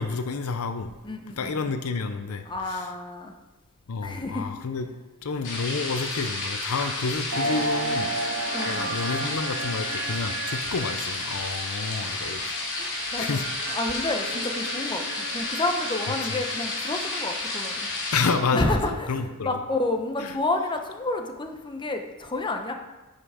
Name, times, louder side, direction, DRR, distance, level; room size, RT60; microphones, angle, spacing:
voice 1, 0.0-0.9 1.4-2.9 3.9-4.9 5.2-8.1 8.7-12.6 13.2-13.4 16.3-16.4 18.1-19.6 20.2-20.3, left 4 dB, 75° left, 9 dB, 0.6 m, -29 dB
voice 2, 1.0-1.7 2.5-3.3 4.0-4.5 8.5-8.9 12.8-13.4 13.7-17.9 18.5-22.7, left 2 dB, 20° left, 4 dB, 0.8 m, -30 dB
sound 1, 5.4-18.3, left 2 dB, 55° left, 2.6 m, -31 dB
sound 2, 7.3-18.7, right 3 dB, 85° right, 1.1 m, -35 dB
9.9 x 5.7 x 4.9 m, 1.1 s
head